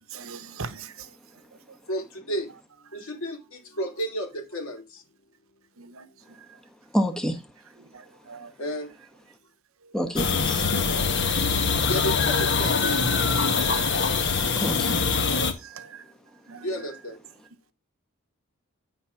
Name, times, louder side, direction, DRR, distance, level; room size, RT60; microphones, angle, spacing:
voice 1, 0.1-0.9 5.8-6.1 7.9-8.5 13.6-13.9 15.6-16.0 16.5-16.6, right 5 dB, 70° right, 0.8 m, -40 dB
voice 2, 1.9-2.5 2.9-5.0 8.6-8.9 11.9-13.0 16.6-17.2, equal, 75° left, 2.7 m, -32 dB
voice 3, 6.9-7.5 9.9-10.7 14.6-15.1, equal, 5° left, 1.0 m, -28 dB
sound 1, 10.2-15.5, left 5 dB, 55° left, 1.2 m, -23 dB
10.0 x 4.0 x 5.9 m
head